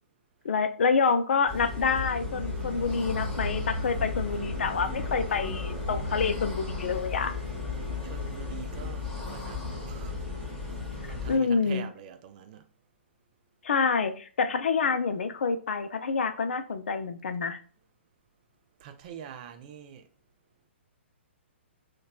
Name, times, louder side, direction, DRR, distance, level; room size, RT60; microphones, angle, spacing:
voice 1, 0.4-7.3 11.0-11.8 13.6-17.6, left 5 dB, 70° left, 0.4 m, -27 dB
sound 1, 1.5-11.4, left 3 dB, 5° left, 1.0 m, -34 dB
voice 2, 8.0-10.1 11.1-12.7 18.8-20.1, right 8 dB, 40° right, 0.4 m, -44 dB
2.8 x 2.2 x 2.3 m
figure-of-eight pair, 125°, 7 cm